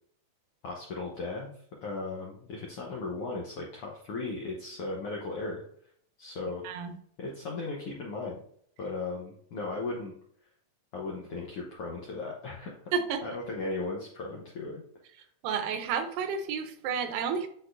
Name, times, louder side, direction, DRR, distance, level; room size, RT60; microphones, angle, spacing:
voice 1, 0.6-1.5 1.8-5.6 6.2-6.6 7.2-8.4 8.8-10.1 10.9-12.9 13.2-14.8, left 3 dB, 80° left, -2 dB, 1.3 m, -36 dB
voice 2, 6.6-7.0 12.9-13.2 15.4-17.5, right 6 dB, 90° right, 8 dB, 2.4 m, -31 dB
9.8 x 4.1 x 2.6 m, 0.64 s
omnidirectional pair, 3.9 m